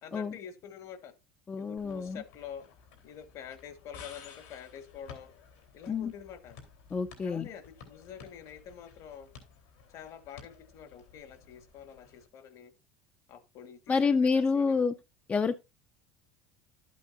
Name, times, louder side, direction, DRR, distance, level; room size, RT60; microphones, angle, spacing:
voice 1, 0.0-1.1 1.6-2.6 3.0-5.3 5.7-6.6 7.2-9.3 9.9-12.7 13.3-14.8, left 8 dB, 55° left, 1.3 m, -47 dB
voice 2, 1.5-2.2 5.9-6.1 6.9-7.5 13.9-15.0 15.3-15.6, left 5 dB, 20° left, 0.5 m, -28 dB
sound 1, 1.8-12.3, left 6 dB, 85° left, 3.0 m, -54 dB
11.5 x 8.4 x 2.5 m
supercardioid pair, 95°, 7 cm